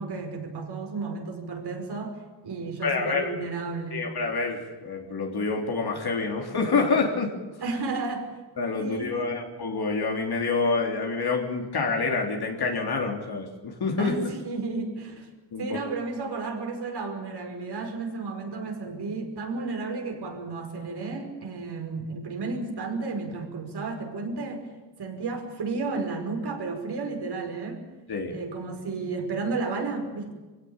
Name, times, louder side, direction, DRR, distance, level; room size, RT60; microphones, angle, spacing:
voice 1, 0.0-4.1 7.6-8.3 8.8-9.4 14.0-15.3 15.6-24.7 25.0-27.8 28.3-30.3, right 3 dB, 65° right, 3 dB, 5.3 m, -32 dB
voice 2, 2.8-3.3 3.9-7.3 8.6-14.2 15.5-15.8 28.1-28.4, left 4 dB, 60° left, 1 dB, 3.5 m, -27 dB
24.5 x 16.5 x 8.8 m, 1.2 s
wide cardioid pair, 140°, 42 cm